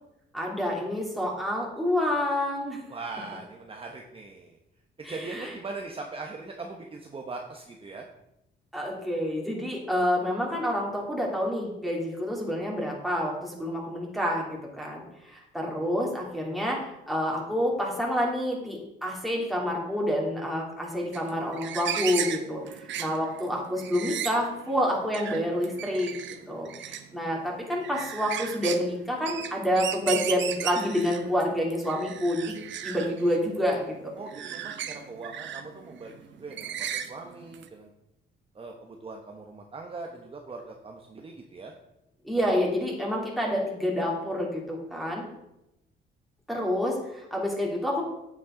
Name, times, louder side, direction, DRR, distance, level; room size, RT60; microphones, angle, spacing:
voice 1, 0.3-2.8 5.0-5.5 8.7-22.6 23.0-26.1 26.5-26.7 27.1-32.6 32.8-33.9 42.2-45.2 46.5-48.0, equal, ahead, -3 dB, 3.0 m, -28 dB
voice 2, 2.9-4.6 5.1-8.1 34.2-37.9 38.5-41.7, right 3 dB, 30° right, 1 dB, 1.0 m, -40 dB
sound 1, 21.1-37.7, right 9 dB, 70° right, 0.8 m, -36 dB
9.1 x 7.6 x 3.8 m, 0.87 s
cardioid pair, 90°, 20 cm